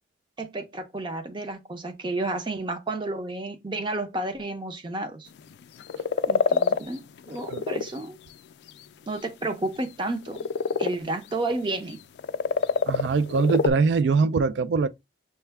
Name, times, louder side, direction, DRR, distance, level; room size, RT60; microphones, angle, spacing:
voice 1, 0.4-5.3 6.3-8.2 9.1-10.5 10.8-12.0, right 2 dB, 25° right, 0.6 m, -31 dB
sound 1, 5.4-5.5 5.8-6.9 7.3-7.9 8.7-8.8 10.3-11.0 11.9-12.0 12.2-13.7, left 6 dB, 70° left, 0.3 m, -25 dB
voice 2, 12.9-14.9, right 4 dB, 80° right, 0.3 m, -22 dB
5.6 x 2.1 x 3.4 m
head